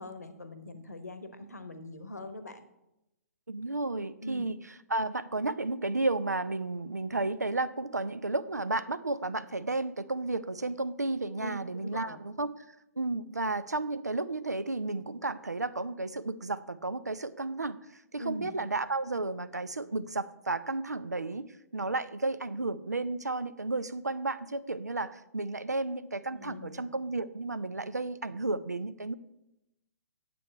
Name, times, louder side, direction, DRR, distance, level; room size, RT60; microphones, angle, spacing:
voice 1, 0.0-2.6 4.2-4.5 11.4-12.2 18.2-18.5 26.3-26.8, left 1 dB, 80° left, 10 dB, 1.0 m, -42 dB
voice 2, 3.5-4.6 4.9-12.5 13.0-29.1, right 2 dB, 85° right, 15 dB, 0.5 m, -33 dB
9.3 x 7.6 x 4.4 m, 0.91 s
figure-of-eight pair, 120°, 9 cm